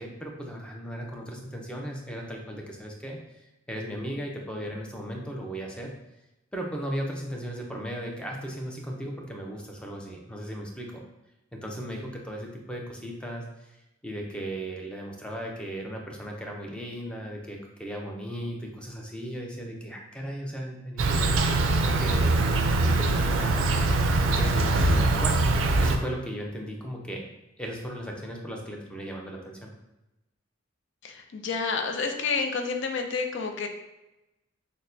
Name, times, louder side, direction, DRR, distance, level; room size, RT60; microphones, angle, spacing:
voice 1, 0.0-5.9 6.5-11.0 11.5-22.4 22.8-23.7 24.3-25.5 25.8-27.2 27.6-29.7, equal, 5° left, 0 dB, 0.5 m, -36 dB
Insect, 21.0-26.0, right 2 dB, 80° right, 0.4 m, -23 dB
voice 2, 31.0-33.7, left 4 dB, 65° left, 5 dB, 0.4 m, -29 dB
6.2 x 2.1 x 2.6 m, 0.97 s
head